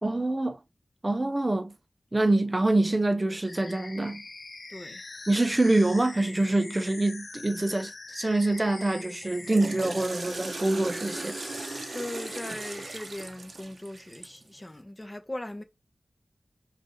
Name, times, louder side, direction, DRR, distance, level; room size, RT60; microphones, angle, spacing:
voice 1, 0.0-0.6 1.0-1.7 2.1-4.2 5.3-11.4, right 2 dB, 30° right, 0.6 m, -25 dB
sound 1, 3.4-13.1, left 3 dB, 65° left, 0.6 m, -44 dB
voice 2, 4.7-5.0 11.9-15.6, left 1 dB, 25° left, 0.8 m, -39 dB
Water / Toilet flush, 9.2-14.5, right 3 dB, 70° right, 0.6 m, -38 dB
5.2 x 2.5 x 2.9 m
wide cardioid pair, 55°, 0 cm